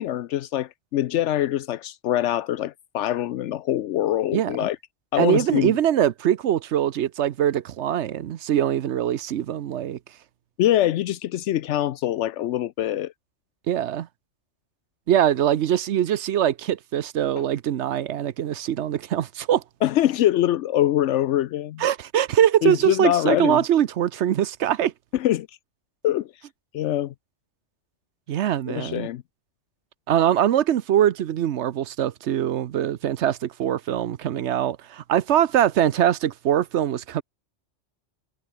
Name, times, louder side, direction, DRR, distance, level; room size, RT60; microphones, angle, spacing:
voice 1, 0.0-4.8 5.1-5.8 10.6-13.1 17.4-17.5 19.8-21.8 22.6-23.6 25.1-25.5 26.0-26.3 26.7-27.1 28.7-29.2, left 13 dB, 80° left, 0.9 m, -24 dB
voice 2, 5.2-10.0 13.7-14.1 15.1-19.6 21.8-24.9 28.3-29.1 30.1-37.2, right 10 dB, 75° right, 1.0 m, -22 dB
omnidirectional pair, 1.2 m